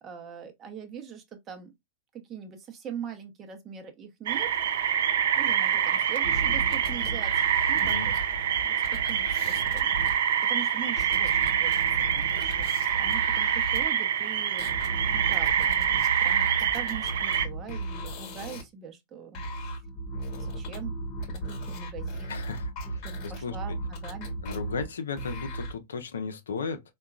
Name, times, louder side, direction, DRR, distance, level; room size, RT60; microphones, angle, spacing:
voice 1, 0.0-1.7 2.1-4.5 5.4-8.1 8.6-11.7 12.1-14.8 15.1-19.6 20.4-21.0 21.3-22.4 22.8-24.4, right 7 dB, 30° right, 0.7 m, -42 dB
sound 1, 4.3-17.5, right 9 dB, 70° right, 0.4 m, -26 dB
sound 2, 6.2-13.8 14.6-18.6 19.3-25.7, right 1 dB, 45° left, 1.1 m, -36 dB
voice 2, 7.8-8.1 22.3-23.8 24.4-26.8, left 5 dB, 80° left, 0.5 m, -35 dB
3.6 x 2.2 x 2.3 m
hypercardioid pair, 105°, 0 cm